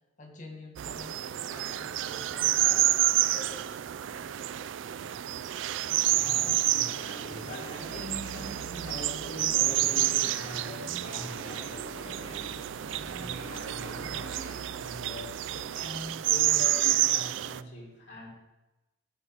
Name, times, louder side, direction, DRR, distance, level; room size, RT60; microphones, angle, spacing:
voice 1, 0.2-4.3, left 1 dB, 40° left, 1 dB, 1.8 m, -48 dB
sound 1, 0.8-17.6, right 13 dB, 85° right, 0.4 m, -29 dB
voice 2, 5.8-18.3, left 1 dB, 70° left, -3 dB, 3.6 m, -43 dB
sound 2, 5.8-14.7, right 1 dB, 35° right, 4.2 m, -45 dB
15.5 x 5.9 x 6.2 m, 1.0 s
head